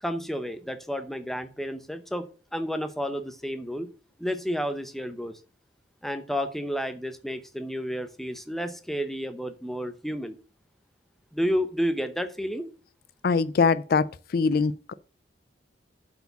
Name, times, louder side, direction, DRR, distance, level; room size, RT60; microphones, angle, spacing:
voice 1, 0.0-3.9 4.2-5.4 6.0-10.4 11.3-12.7, equal, ahead, 0.8 m, -31 dB
voice 2, 13.2-14.0 14.3-14.9, left 5 dB, 55° left, 0.4 m, -22 dB
7.9 x 4.8 x 6.8 m
head